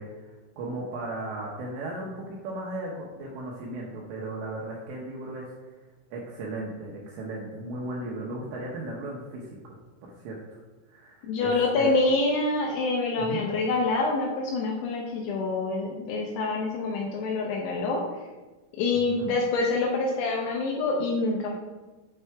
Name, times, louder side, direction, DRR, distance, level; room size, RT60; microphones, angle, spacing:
voice 1, 0.0-5.7 6.1-9.8 10.2-10.6 10.9-11.9 13.2-13.4 19.1-19.3, right 2 dB, 80° right, -3 dB, 2.6 m, -36 dB
voice 2, 11.2-18.0 18.8-21.6, left 3 dB, 80° left, 0 dB, 2.8 m, -26 dB
8.2 x 3.3 x 4.5 m, 1.2 s
omnidirectional pair, 6.0 m